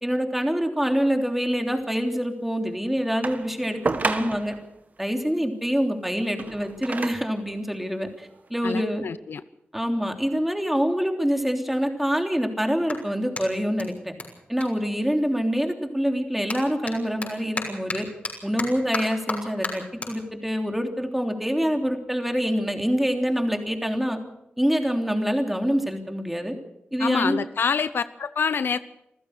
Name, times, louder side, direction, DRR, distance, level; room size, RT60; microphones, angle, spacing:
voice 1, 0.0-4.5 5.0-9.0 9.7-14.1 14.5-18.1 18.4-24.2 24.6-26.5 26.9-27.4, equal, 5° right, 4 dB, 3.3 m, -25 dB
sound 1, 3.2-4.6 6.2-7.4 8.2-8.3, right 4 dB, 45° right, 1.8 m, -30 dB
voice 2, 8.6-9.4 27.0-28.8, left 6 dB, 70° left, 14 dB, 0.8 m, -26 dB
Clapping, 11.9-15.6 15.9-22.5, left 3 dB, 40° left, 6.6 m, -37 dB
27.0 x 15.0 x 6.6 m, 0.86 s
wide cardioid pair, 85°, 4 cm